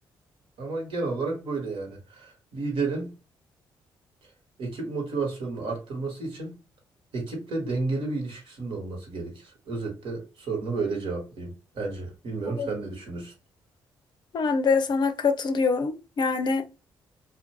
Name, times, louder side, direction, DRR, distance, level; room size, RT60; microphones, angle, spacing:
voice 1, 0.6-3.1 4.6-6.6 7.1-13.3, right 3 dB, 70° right, 1.2 m, -32 dB
voice 2, 14.3-16.7, left 4 dB, 50° left, 0.5 m, -24 dB
2.5 x 2.2 x 2.8 m
supercardioid pair, 60°, 9 cm